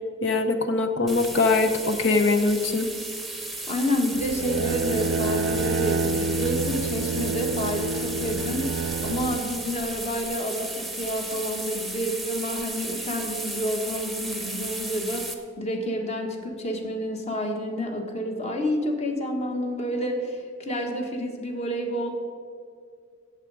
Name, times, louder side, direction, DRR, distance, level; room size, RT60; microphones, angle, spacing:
voice 1, 0.2-2.9, left 3 dB, 65° left, 8 dB, 0.8 m, -22 dB
sound 1, 1.1-15.3, right 2 dB, ahead, 1.0 m, -35 dB
voice 2, 3.7-22.2, equal, 35° left, 3 dB, 1.5 m, -29 dB
sound 2, 4.1-9.4, right 4 dB, 70° right, 0.4 m, -28 dB
16.5 x 7.2 x 4.9 m, 2.3 s
head